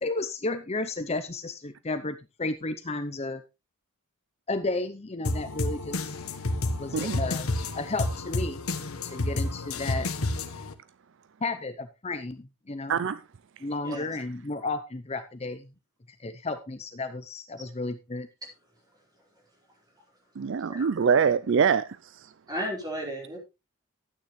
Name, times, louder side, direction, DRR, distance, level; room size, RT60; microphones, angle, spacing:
voice 1, 0.0-3.4 4.5-6.2 6.8-8.6 9.0-10.1 11.4-13.0 13.6-15.7 16.2-18.3, left 2 dB, 30° left, 0.7 m, -33 dB
sound 1, 5.2-10.7, left 2 dB, 80° left, 1.3 m, -30 dB
voice 2, 12.9-13.2 20.4-21.9, right 6 dB, 55° right, 0.4 m, -24 dB
voice 3, 22.5-23.4, equal, 20° right, 4.6 m, -34 dB
12.0 x 9.2 x 3.2 m
head